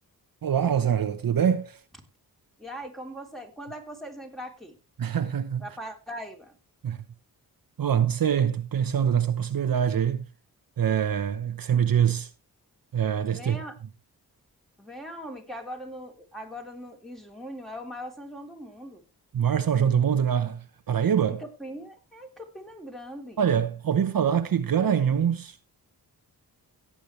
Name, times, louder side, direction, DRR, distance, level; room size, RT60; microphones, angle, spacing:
voice 1, 0.4-1.8 5.0-5.6 6.8-7.0 7.8-10.2 10.8-12.3 12.9-13.6 19.3-21.4 23.4-25.6, right 8 dB, 60° right, 1.0 m, -24 dB
voice 2, 2.6-4.8 5.6-6.6 13.3-13.8 14.8-19.0 21.3-23.4, equal, ahead, 3.3 m, -40 dB
17.0 x 8.7 x 3.2 m
cardioid pair, 85°, 39 cm